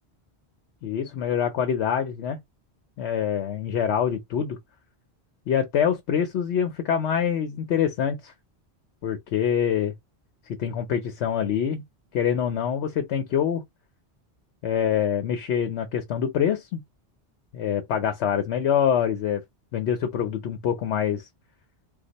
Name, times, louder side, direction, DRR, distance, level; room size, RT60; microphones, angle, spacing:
voice 1, 0.8-2.4 3.0-4.6 5.5-8.3 9.0-9.9 10.5-11.8 12.1-13.6 14.6-16.8 17.5-19.4 19.7-21.3, left 8 dB, 85° left, 0.9 m, -25 dB
2.6 x 2.3 x 3.9 m
omnidirectional pair, 1.1 m